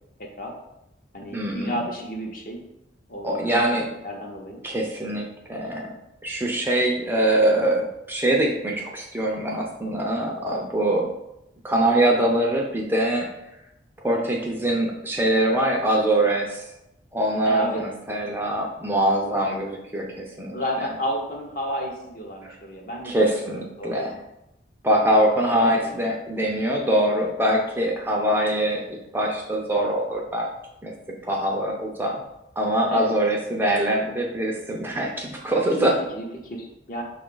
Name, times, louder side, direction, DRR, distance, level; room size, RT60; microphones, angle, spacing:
voice 1, 0.2-0.5 1.1-2.6 3.1-4.6 17.4-17.8 20.5-23.2 23.5-24.0 25.6-26.0 32.9-33.1 35.8-37.0, equal, 50° left, 0 dB, 0.8 m, -32 dB
voice 2, 1.3-1.8 3.2-3.9 4.6-5.9 6.2-11.1 11.6-13.3 14.0-16.7 17.1-20.5 23.0-24.2 24.8-30.5 30.8-30.9 31.2-32.2 32.6-36.0, right 1 dB, 10° right, -1 dB, 0.4 m, -23 dB
5.5 x 2.4 x 3.8 m, 0.86 s
head